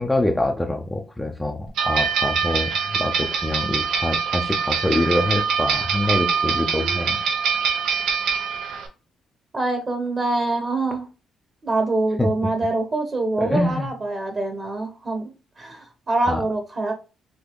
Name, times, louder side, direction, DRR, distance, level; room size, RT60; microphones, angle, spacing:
voice 1, 0.0-7.2 12.2-12.3 13.4-13.9 16.3-16.4, left 1 dB, 10° left, 3 dB, 0.6 m, -25 dB
sound 1, 1.8-8.9, right 6 dB, 85° right, 0.9 m, -24 dB
voice 2, 9.5-11.1 11.6-16.9, right 2 dB, 40° right, 4 dB, 1.2 m, -25 dB
5.1 x 2.8 x 2.2 m, 0.33 s
cardioid pair, 90°, 0 cm